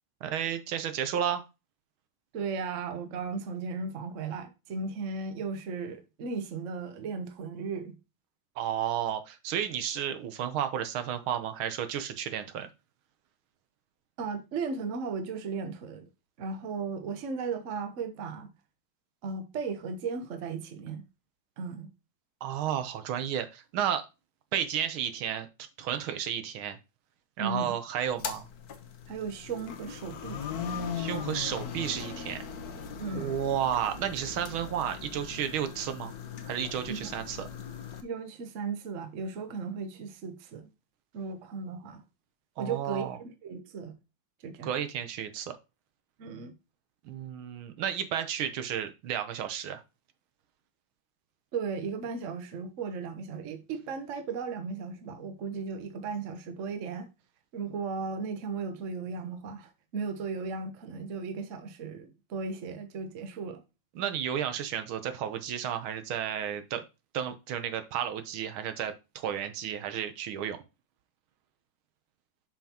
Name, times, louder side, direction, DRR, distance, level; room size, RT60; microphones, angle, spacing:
voice 1, 0.2-1.4 8.6-12.7 22.4-24.1 24.5-25.5 25.8-26.8 27.4-28.5 30.9-32.4 33.1-36.1 36.5-37.5 42.6-43.2 44.6-45.6 47.0-49.8 63.9-66.9 67.1-70.6, right 9 dB, 80° right, 1.7 m, -32 dB
voice 2, 2.3-8.0 14.2-16.0 16.4-18.5 19.2-21.0 21.6-21.9 27.4-27.8 29.1-30.4 33.0-33.3 36.9-37.0 38.0-40.7 41.1-42.0 42.6-43.1 43.4-44.0 44.4-44.7 46.2-46.5 51.5-57.1 57.5-63.6, right 5 dB, 50° right, 1.0 m, -36 dB
sound 1, 28.1-38.0, left 6 dB, 60° left, 1.1 m, -39 dB
6.9 x 5.8 x 2.9 m
omnidirectional pair, 2.3 m